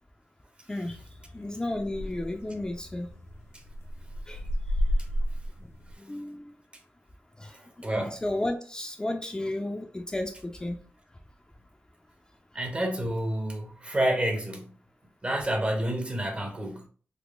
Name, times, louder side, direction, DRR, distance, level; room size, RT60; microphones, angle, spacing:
voice 1, 0.7-1.0 1.3-3.1 4.3-4.5 6.0-6.5 7.4-10.8, left 1 dB, 15° left, 0.4 m, -33 dB
sound 1, 0.9-5.9, equal, 70° left, 0.7 m, -33 dB
voice 2, 7.5-8.2 12.5-14.7 15.2-16.9, right 1 dB, 25° right, 0.7 m, -29 dB
3.5 x 2.9 x 2.4 m
wide cardioid pair, 90°, 5 cm